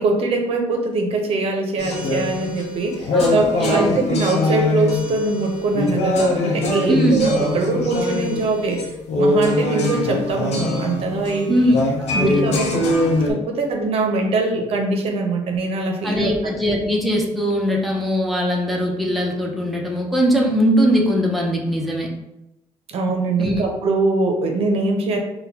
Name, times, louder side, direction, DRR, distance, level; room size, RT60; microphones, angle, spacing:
voice 1, 0.0-11.7 12.1-12.9 13.3-16.5 22.9-25.2, right 3 dB, 65° right, 3 dB, 0.6 m, -22 dB
sound 1, 1.8-13.3, left 2 dB, 75° left, 0.7 m, -22 dB
voice 2, 3.1-4.0 6.9-7.3 11.5-11.9 12.1-12.4 16.0-22.1 23.4-23.6, equal, ahead, -2 dB, 0.6 m, -21 dB
4.1 x 2.2 x 2.7 m, 0.88 s
cardioid pair, 115°, 11 cm